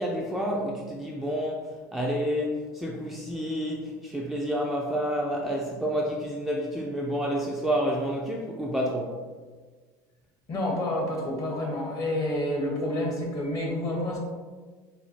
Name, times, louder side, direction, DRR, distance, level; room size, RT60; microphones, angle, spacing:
voice 1, 0.0-9.2, equal, ahead, -2 dB, 0.3 m, -29 dB
voice 2, 10.5-14.2, left 1 dB, 35° left, -1 dB, 1.0 m, -29 dB
4.3 x 2.3 x 2.7 m, 1.5 s
supercardioid pair, 115°, 10 cm